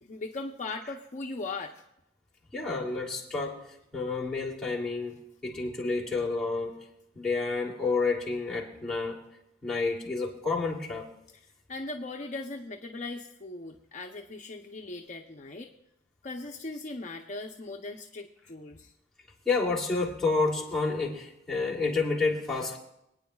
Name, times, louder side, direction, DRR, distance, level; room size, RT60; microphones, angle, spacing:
voice 1, 0.0-1.8 11.7-15.7 16.2-18.9, left 2 dB, 45° left, 2 dB, 0.7 m, -39 dB
voice 2, 2.5-3.6 3.9-6.7 7.1-9.2 9.6-11.0 19.4-22.8, left 3 dB, 5° left, -5 dB, 2.7 m, -29 dB
26.0 x 9.5 x 2.3 m, 0.83 s
head